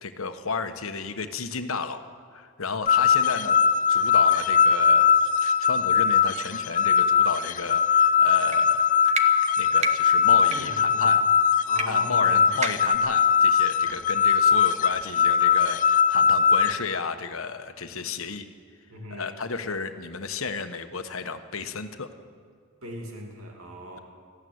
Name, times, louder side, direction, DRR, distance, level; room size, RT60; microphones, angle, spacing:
voice 1, 0.0-2.0 2.3-9.1 9.6-11.2 11.9-18.5 19.1-22.1, left 4 dB, 80° left, 8 dB, 1.2 m, -33 dB
sound 1, 2.9-16.7, left 7 dB, 40° left, 0.5 m, -21 dB
sound 2, 8.4-8.6 9.1-9.3 9.8-9.9 10.4-10.6 11.8-11.9 12.1-12.2 12.6-13.0, right 5 dB, 35° right, 1.1 m, -29 dB
voice 2, 10.5-11.1 11.6-12.6 13.8-14.1 18.9-19.4 22.8-24.0, equal, 80° right, 1 dB, 2.5 m, -39 dB
19.5 x 14.5 x 9.4 m, 2.1 s
head